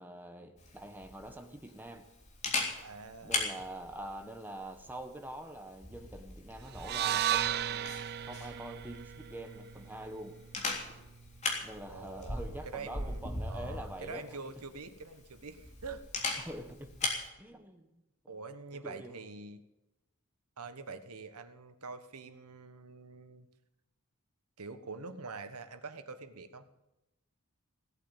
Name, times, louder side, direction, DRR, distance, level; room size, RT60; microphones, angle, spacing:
voice 1, 0.0-2.1 3.2-10.4 11.6-14.4 16.4-17.1 17.4-17.9 18.7-19.2, right 1 dB, 10° right, 6 dB, 1.4 m, -45 dB
Camera, 0.6-17.3, left 3 dB, 30° left, 3.3 m, -40 dB
voice 2, 2.8-3.4 11.9-12.4 12.6-13.2 13.5-16.0 18.3-19.6 20.6-23.5 24.6-26.7, right 4 dB, 80° right, 10 dB, 1.3 m, -45 dB
sound 1, 6.8-11.0, right 11 dB, 45° right, 0.5 m, -35 dB
17.0 x 8.4 x 9.0 m, 0.92 s
head